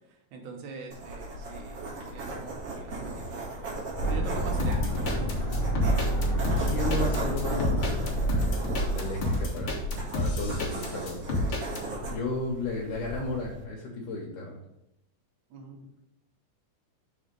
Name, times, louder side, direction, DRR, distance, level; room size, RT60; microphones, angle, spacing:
voice 1, 0.1-5.4 15.5-15.8, right 4 dB, 75° right, 2 dB, 2.4 m, -43 dB
sound 1, 0.9-13.6, right 1 dB, 55° right, 2.7 m, -37 dB
sound 2, 4.0-10.0, right 1 dB, 10° right, 2.0 m, -29 dB
sound 3, 4.6-11.8, left 2 dB, 55° left, 1.7 m, -30 dB
voice 2, 6.6-8.6 8.9-9.8 10.1-11.5 12.1-14.6, left 2 dB, 75° left, -3 dB, 2.3 m, -34 dB
5.7 x 4.1 x 5.1 m, 0.87 s
omnidirectional pair, 3.6 m